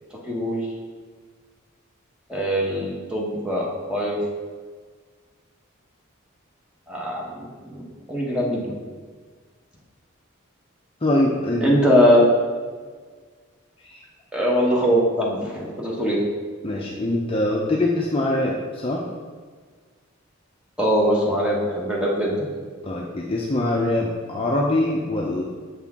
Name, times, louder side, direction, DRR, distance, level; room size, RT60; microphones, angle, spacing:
voice 1, 0.1-0.7 2.3-4.2 6.9-8.8 11.6-12.3 14.3-16.2 20.8-22.5, equal, 5° right, -4 dB, 1.0 m, -22 dB
voice 2, 11.0-11.7 13.9-14.0 16.6-19.0 22.8-25.4, left 1 dB, 25° left, -2 dB, 0.5 m, -23 dB
7.1 x 4.3 x 3.6 m, 1.5 s
head